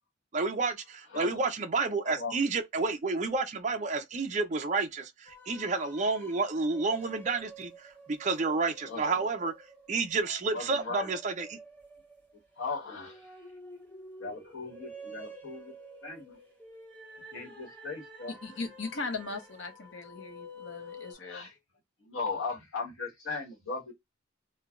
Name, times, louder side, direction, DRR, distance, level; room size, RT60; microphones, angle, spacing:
voice 1, 0.3-9.5 9.9-11.6, right 3 dB, 35° right, 0.4 m, -30 dB
voice 2, 2.0-2.4 8.9-9.2 10.5-11.1 12.6-13.3 14.2-15.7 16.0-16.4 17.3-18.3 21.2-21.5 22.0-23.9, left 4 dB, 85° left, 1.3 m, -38 dB
sound 1, 5.3-21.2, equal, 10° left, 0.7 m, -49 dB
voice 3, 18.3-21.5, left 3 dB, 70° left, 0.7 m, -39 dB
3.2 x 2.2 x 2.4 m
head